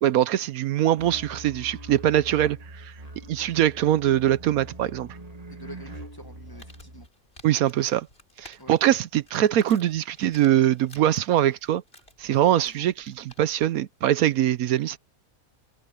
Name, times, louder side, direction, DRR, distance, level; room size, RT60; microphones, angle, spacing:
voice 1, 0.0-2.9 3.3-5.1 7.4-8.1 8.4-11.8 12.2-15.0, right 12 dB, 80° right, 1.1 m, -22 dB
sound 1, 1.0-7.1, right 1 dB, 25° right, 1.8 m, -42 dB
voice 2, 5.5-7.1 8.6-8.7 12.4-12.9, equal, 15° left, 1.7 m, -46 dB
Crumpling crinkling, 6.3-13.7, left 1 dB, 40° left, 5.4 m, -54 dB
open air
omnidirectional pair, 1.5 m